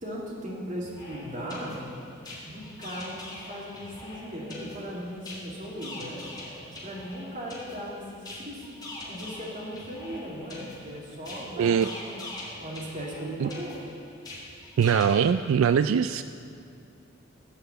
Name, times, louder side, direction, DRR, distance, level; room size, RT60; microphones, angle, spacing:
voice 1, 0.0-1.8 2.4-6.3 6.7-8.8 9.1-12.2 12.6-13.8, equal, 40° right, -4 dB, 2.8 m, -38 dB
sound 1, 0.8-15.2, left 2 dB, 20° left, 3.2 m, -43 dB
voice 2, 11.6-11.9 13.4-13.5 14.8-16.2, right 7 dB, 75° right, 11 dB, 0.3 m, -22 dB
17.0 x 5.7 x 8.2 m, 2.5 s
head